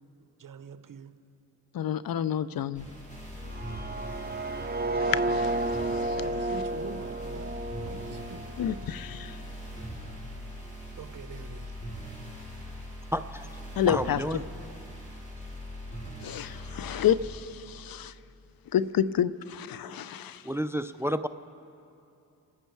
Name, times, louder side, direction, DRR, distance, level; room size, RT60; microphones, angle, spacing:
voice 1, 0.4-1.1 6.2-7.5 7.8-8.5 11.0-11.7, right 6 dB, 55° right, 10 dB, 0.9 m, -44 dB
voice 2, 1.7-2.9 5.0-6.3 8.6-9.4 13.8-14.2 16.2-18.1 18.7-20.4, left 9 dB, 60° left, 16 dB, 0.6 m, -29 dB
sound 1, 2.7-17.2, left 1 dB, 20° left, 4.1 m, -41 dB
sound 2, 3.4-9.4, right 2 dB, 25° right, 0.8 m, -32 dB
voice 3, 13.1-13.5 13.9-14.4 20.4-21.3, equal, 5° right, 13 dB, 0.4 m, -31 dB
29.0 x 10.0 x 4.6 m, 2.6 s
cardioid pair, 60°, 40 cm